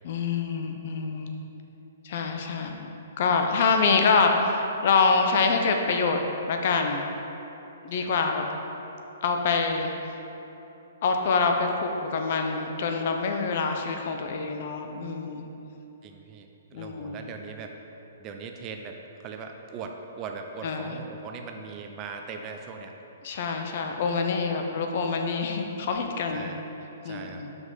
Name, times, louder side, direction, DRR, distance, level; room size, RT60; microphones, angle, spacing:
voice 1, 0.0-1.3 2.0-2.9 3.2-6.2 6.5-7.1 7.8-8.4 9.2-9.9 11.0-15.5 16.7-17.2 20.6-21.0 23.2-26.5 27.0-27.5, left 4 dB, 50° left, 4 dB, 0.7 m, -26 dB
voice 2, 16.0-17.8 18.2-22.9 26.3-26.6 27.0-27.4, right 5 dB, 30° right, 3 dB, 0.6 m, -40 dB
6.0 x 5.3 x 5.7 m, 3.0 s
figure-of-eight pair, 120°, 0 cm